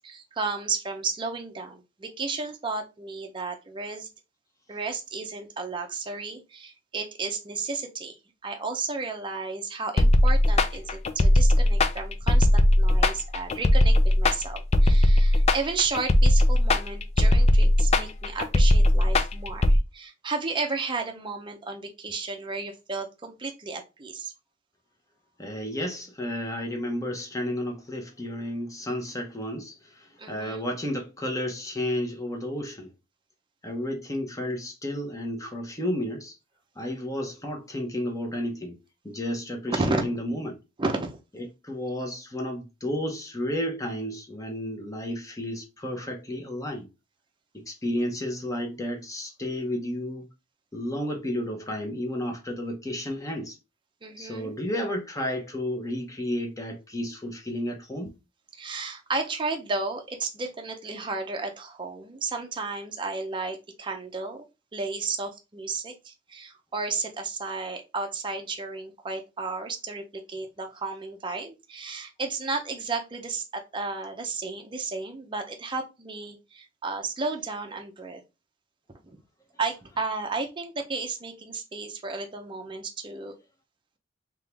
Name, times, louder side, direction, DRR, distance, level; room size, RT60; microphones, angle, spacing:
voice 1, 0.0-4.1 4.7-24.3 30.2-30.6 39.7-40.1 40.8-41.2 54.0-54.5 58.5-64.4 64.7-78.2 79.6-83.3, right 4 dB, 25° right, 0.6 m, -33 dB
sound 1, 10.0-19.8, left 1 dB, 35° left, 0.4 m, -19 dB
voice 2, 25.4-32.9 33.6-36.3 36.8-38.8 39.0-40.6 41.4-46.9 47.5-50.3 50.7-53.6 54.2-58.1, left 1 dB, 15° left, 0.9 m, -32 dB
3.6 x 3.0 x 3.4 m
head